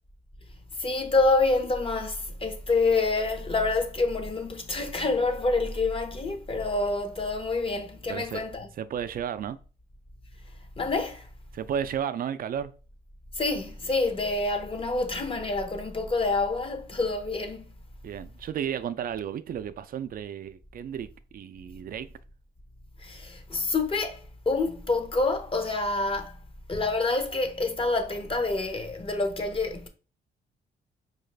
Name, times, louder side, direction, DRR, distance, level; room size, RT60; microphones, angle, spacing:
voice 1, 0.8-8.7 10.8-11.3 13.4-17.7 23.0-26.4 26.7-29.9, left 3 dB, 25° left, 0.7 m, -27 dB
voice 2, 8.1-8.4 8.8-9.6 11.5-12.7 18.0-22.1, right 8 dB, 45° right, 0.4 m, -33 dB
4.7 x 2.4 x 3.2 m
cardioid pair, 90°, 20 cm